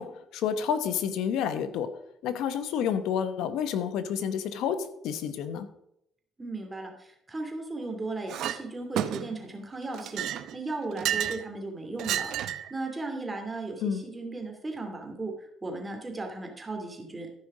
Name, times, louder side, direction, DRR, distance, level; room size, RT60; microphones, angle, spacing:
voice 1, 0.0-1.9 2.2-5.7 13.8-14.0, left 8 dB, 80° left, 10 dB, 1.0 m, -29 dB
voice 2, 6.4-17.3, right 2 dB, 20° right, 3 dB, 2.5 m, -36 dB
Chink clink, 8.3-8.6 9.0-9.5 9.9-11.4 12.0-12.7, right 11 dB, 75° right, 0.7 m, -31 dB
14.0 x 5.5 x 4.9 m, 0.77 s
cardioid pair, 105°, 0 cm